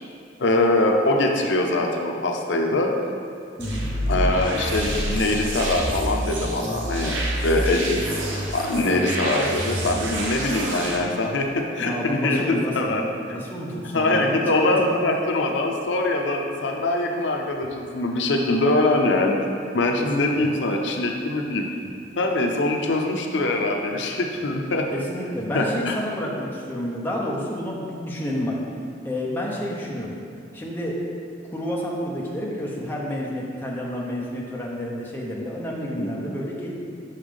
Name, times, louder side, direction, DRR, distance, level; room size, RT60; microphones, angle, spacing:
voice 1, 0.4-2.9 4.1-8.1 8.5-13.0 13.3-13.4 13.9-21.7 22.2-24.9 25.5-25.9 36.0-36.1, left 2 dB, 75° left, 2 dB, 0.7 m, -23 dB
sound 1, 3.6-11.0, right 1 dB, 90° right, 1.1 m, -27 dB
voice 2, 11.8-15.0 20.0-20.5 24.9-28.6 29.0-30.1 30.5-31.0 31.5-36.7, equal, 10° left, -4 dB, 0.9 m, -29 dB
6.1 x 5.7 x 5.1 m, 2.4 s
head